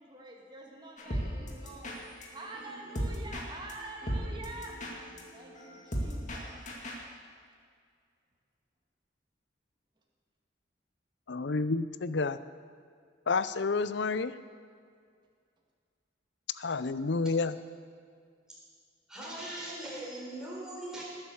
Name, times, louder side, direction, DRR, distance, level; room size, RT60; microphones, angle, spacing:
voice 1, 0.0-2.0 2.3-4.7 5.3-6.9, right 2 dB, 25° right, -1 dB, 2.0 m, -46 dB
sound 1, 1.0-7.1, equal, 40° left, 2.2 m, -37 dB
voice 2, 11.3-12.4 13.3-14.3 16.6-17.5, left 4 dB, 65° left, 14 dB, 0.6 m, -30 dB
voice 3, 19.1-21.0, right 1 dB, 5° right, -7 dB, 4.2 m, -40 dB
19.5 x 9.0 x 7.2 m, 2.1 s
head